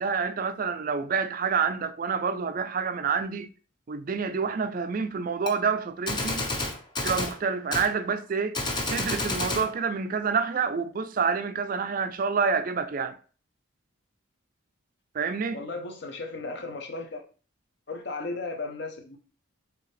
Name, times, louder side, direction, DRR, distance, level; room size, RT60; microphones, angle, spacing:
voice 1, 0.0-3.5 3.9-6.4 7.0-8.6 8.9-13.2 15.1-15.6, right 5 dB, 40° right, 0.3 m, -28 dB
Gunshot gunfire, 5.5-5.6 6.1-7.4 7.7-7.9 8.5-9.7, left 2 dB, 20° left, 0.6 m, -29 dB
voice 2, 15.5-17.2 17.9-19.2, left 3 dB, 55° left, 0.8 m, -35 dB
4.7 x 3.3 x 3.2 m
head